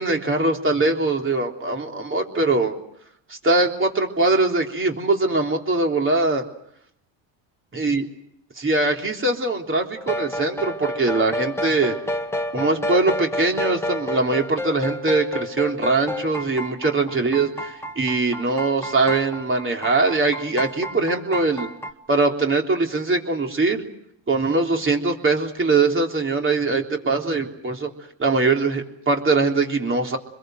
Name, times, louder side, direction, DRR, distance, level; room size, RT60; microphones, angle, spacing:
voice 1, 0.0-2.7 3.3-6.4 7.7-8.0 8.6-12.0 12.5-21.7 22.1-23.8 24.3-27.9 28.2-30.2, right 3 dB, 25° right, 2 dB, 3.6 m, -22 dB
sound 1, 10.0-21.9, left 1 dB, 5° left, 1.9 m, -30 dB
25.5 x 22.0 x 7.9 m, 0.74 s
supercardioid pair, 100°, 47 cm